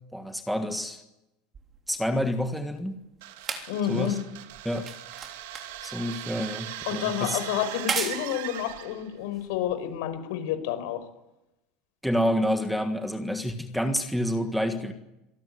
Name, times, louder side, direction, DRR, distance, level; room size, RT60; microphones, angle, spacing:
voice 1, 0.1-1.0 1.9-3.0 3.9-4.1 4.6-4.9 5.8-7.4 12.0-14.9, equal, ahead, 7 dB, 1.6 m, -28 dB
sound 1, 1.5-10.2 11.0-11.1, right 5 dB, 25° right, 3.3 m, -38 dB
sound 2, 3.2-9.1, right 13 dB, 85° right, 2.0 m, -39 dB
voice 2, 3.7-4.2 6.9-11.0, left 11 dB, 75° left, 9 dB, 4.9 m, -29 dB
25.5 x 19.0 x 9.6 m, 0.95 s
cardioid pair, 165°, 0 cm